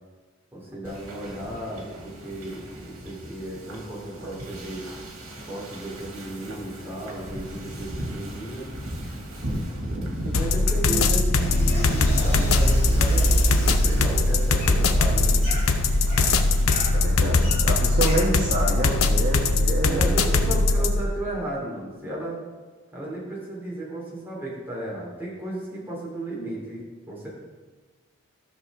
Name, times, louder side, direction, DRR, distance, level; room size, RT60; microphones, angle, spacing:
voice 1, 0.5-4.8 5.5-8.7 9.8-15.4 19.8-22.4 22.9-26.8 27.1-27.3, right 1 dB, 10° right, -5 dB, 2.4 m, -34 dB
Wind / Ocean, 0.8-16.6, equal, 85° right, 2.1 m, -36 dB
sound 1, 10.3-21.0, left 3 dB, 85° left, 0.7 m, -21 dB
sound 2, 11.4-19.0, right 1 dB, 30° left, 2.4 m, -27 dB
voice 2, 16.9-20.4, right 1 dB, 40° right, -4 dB, 1.2 m, -28 dB
14.0 x 6.2 x 3.6 m, 1.4 s
head